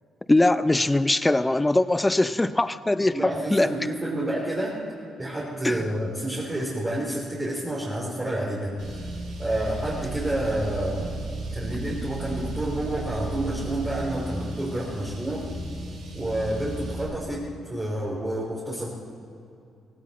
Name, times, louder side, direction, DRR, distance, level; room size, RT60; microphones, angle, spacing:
voice 1, 0.3-3.7 5.6-5.9, left 2 dB, 15° left, 14 dB, 0.5 m, -22 dB
voice 2, 3.1-4.8 5.2-8.7 9.4-11.1 11.5-15.5 16.1-18.9, right 1 dB, 20° right, -5 dB, 3.3 m, -29 dB
Car, 8.8-17.0, right 2 dB, 80° right, 4.8 m, -34 dB
17.0 x 17.0 x 4.3 m, 2.6 s
cardioid pair, 90°, 0 cm